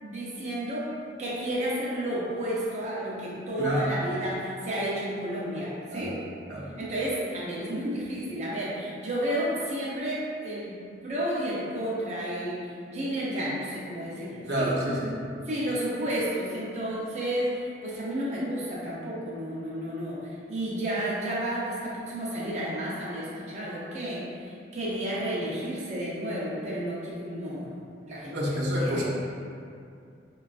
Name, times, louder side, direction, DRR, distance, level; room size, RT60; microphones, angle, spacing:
voice 1, 0.0-0.9 1.2-6.1 6.8-14.7 15.5-17.5 17.8-27.7 28.1-29.0, right 1 dB, 40° right, -7 dB, 0.6 m, -31 dB
voice 2, 3.6-3.9 5.9-6.1 6.5-6.7 14.5-15.2 28.3-29.0, equal, 85° right, -5 dB, 0.7 m, -28 dB
4.8 x 2.3 x 2.4 m, 2.4 s
head